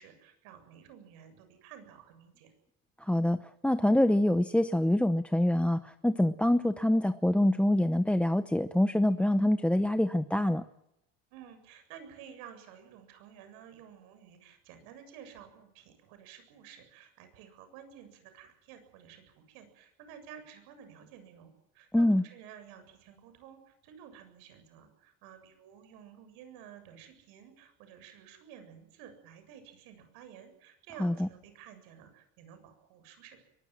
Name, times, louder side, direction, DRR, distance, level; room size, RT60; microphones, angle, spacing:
voice 1, 0.0-2.5 11.3-33.4, right 8 dB, 90° right, 9 dB, 7.5 m, -52 dB
voice 2, 3.0-10.6 21.9-22.2 31.0-31.3, left 1 dB, 5° left, 11 dB, 0.8 m, -25 dB
23.0 x 20.0 x 7.6 m, 0.79 s
cardioid pair, 135°, 35 cm